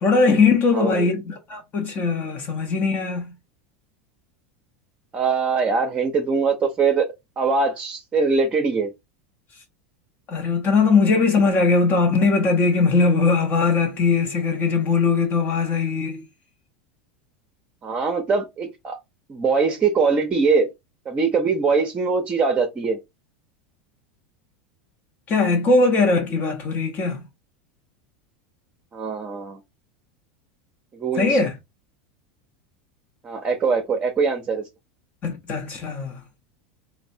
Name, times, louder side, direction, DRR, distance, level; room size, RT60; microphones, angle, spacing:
voice 1, 0.0-3.3 10.3-16.2 25.3-27.2 31.2-31.6 35.2-36.2, left 4 dB, 35° left, 0.7 m, -20 dB
voice 2, 0.7-1.1 5.1-7.1 7.4-8.9 17.8-19.0 19.3-20.7 21.1-23.0 28.9-29.6 31.0-31.4 33.2-34.6, right 4 dB, 25° right, 0.6 m, -22 dB
3.0 x 2.1 x 2.6 m
supercardioid pair, 115°, 5 cm